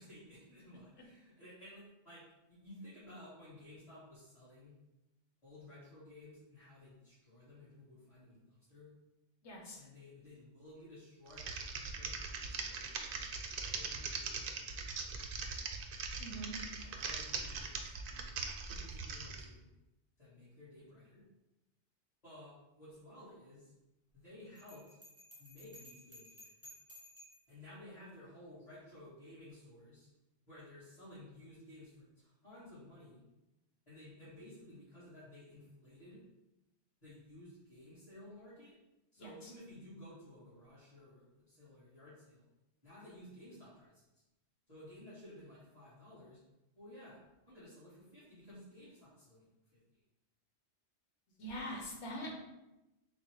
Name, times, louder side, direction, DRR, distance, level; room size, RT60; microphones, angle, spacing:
voice 1, 0.0-4.7 5.4-8.9 9.8-14.9 15.3-15.6 16.3-16.5 16.8-18.3 18.6-19.7 20.2-21.2 22.2-23.7 24.1-25.0 25.4-26.5 27.5-30.1 30.5-33.2 33.9-36.2 37.0-38.8 39.1-42.4 42.8-44.2 44.7-46.4 46.7-47.2 47.5-49.5 49.7-50.0, left 1 dB, 35° left, -13 dB, 1.7 m, -55 dB
voice 2, 9.4-9.8 16.2-16.5 39.2-39.5 51.4-52.4, equal, 85° left, -1 dB, 1.2 m, -43 dB
Typing, 11.3-19.4, right 4 dB, 60° right, 0.6 m, -41 dB
Bell, 24.6-27.5, left 1 dB, 15° left, 1.3 m, -56 dB
3.9 x 2.2 x 4.5 m, 0.97 s
omnidirectional pair, 1.2 m